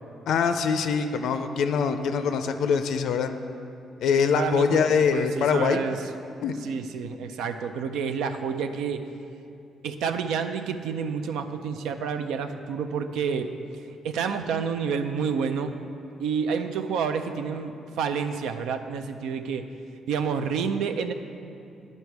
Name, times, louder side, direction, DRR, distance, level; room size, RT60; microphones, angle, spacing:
voice 1, 0.3-3.3 4.0-5.8 6.4-6.5, left 6 dB, 75° left, 8 dB, 0.4 m, -23 dB
voice 2, 4.3-6.0 6.6-9.0 9.8-13.5 14.0-15.7 16.2-19.7 20.1-21.1, right 6 dB, 85° right, 8 dB, 0.4 m, -29 dB
10.0 x 5.4 x 4.6 m, 2.6 s
cardioid pair, 90°, 0 cm